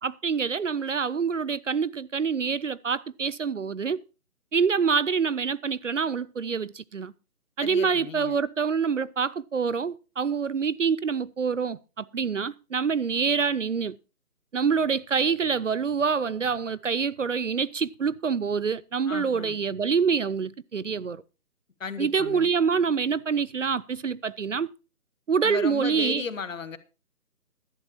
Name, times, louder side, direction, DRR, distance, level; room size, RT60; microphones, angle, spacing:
voice 1, 0.0-4.0 4.5-7.1 7.6-14.0 14.5-21.2 22.0-24.7 25.3-26.2, right 6 dB, 55° right, 0.5 m, -26 dB
voice 2, 7.6-8.3 19.1-19.6 21.8-22.5 25.4-26.8, left 5 dB, 55° left, 1.4 m, -35 dB
15.5 x 11.5 x 2.8 m
figure-of-eight pair, 160°, 46 cm